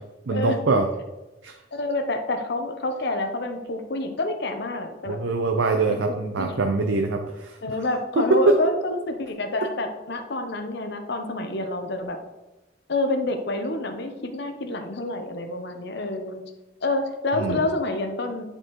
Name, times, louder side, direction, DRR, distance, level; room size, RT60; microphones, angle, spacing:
voice 1, 0.3-0.9 1.4-1.5 5.1-7.6 8.2-8.5 17.3-17.6, right 3 dB, 80° right, 4 dB, 0.6 m, -23 dB
voice 2, 1.7-5.2 5.9-6.0 6.4-6.9 7.6-12.2 12.9-16.4 16.8-18.4, left 2 dB, 60° left, 6 dB, 0.8 m, -28 dB
9.7 x 4.5 x 3.0 m, 1.0 s
head